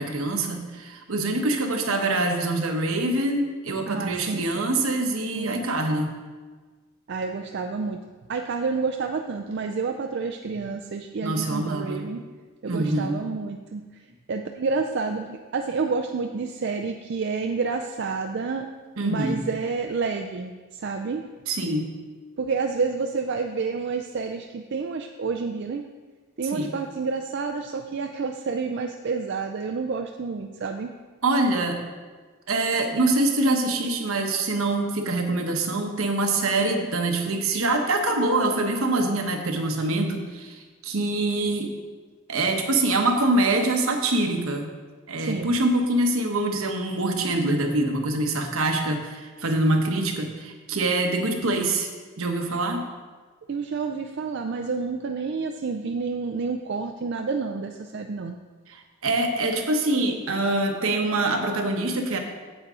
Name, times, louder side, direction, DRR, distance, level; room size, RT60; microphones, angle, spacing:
voice 1, 0.0-6.1 11.2-12.1 12.7-13.2 19.0-19.4 21.5-21.9 26.5-26.7 31.2-31.8 32.5-41.7 42.3-44.7 45.1-51.9 52.2-52.8 58.7-62.2, right 2 dB, 75° right, 4 dB, 1.0 m, -24 dB
voice 2, 3.9-4.8 5.3-5.7 7.1-8.0 8.3-12.2 12.6-14.0 14.3-18.7 19.0-21.3 22.4-25.9 26.4-30.9 45.2-45.5 53.5-58.4, right 4 dB, 50° right, 4 dB, 0.4 m, -29 dB
8.8 x 7.9 x 3.7 m, 1.4 s
head